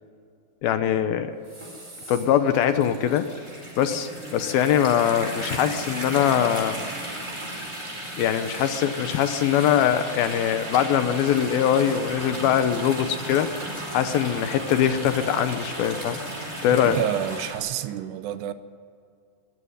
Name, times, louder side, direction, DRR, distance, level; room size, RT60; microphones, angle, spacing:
voice 1, 0.6-1.3 2.1-3.3 3.8-6.8 8.2-13.5 13.9-16.2 16.6-17.0, left 9 dB, 75° left, 2.3 m, -22 dB
sound 1, 1.4-17.6, right 1 dB, 15° right, 4.7 m, -35 dB
voice 2, 16.7-18.5, right 11 dB, 75° right, 2.8 m, -29 dB
23.0 x 14.5 x 9.9 m
omnidirectional pair, 5.1 m